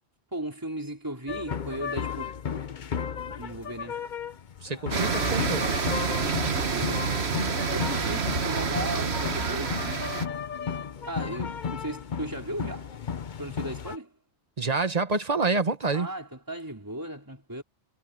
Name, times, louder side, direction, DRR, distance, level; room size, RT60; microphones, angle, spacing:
voice 1, 0.3-2.3 3.4-4.0 6.7-7.1 7.7-10.3 11.1-12.9 13.4-14.1 15.9-17.6, right 1 dB, 20° right, 4.1 m, -36 dB
sound 1, 1.3-14.0, left 7 dB, 50° left, 0.9 m, -34 dB
voice 2, 4.6-5.7 14.6-16.1, right 3 dB, 40° right, 1.3 m, -27 dB
sound 2, 4.9-10.3, right 5 dB, 75° right, 1.6 m, -28 dB
omnidirectional pair, 1.1 m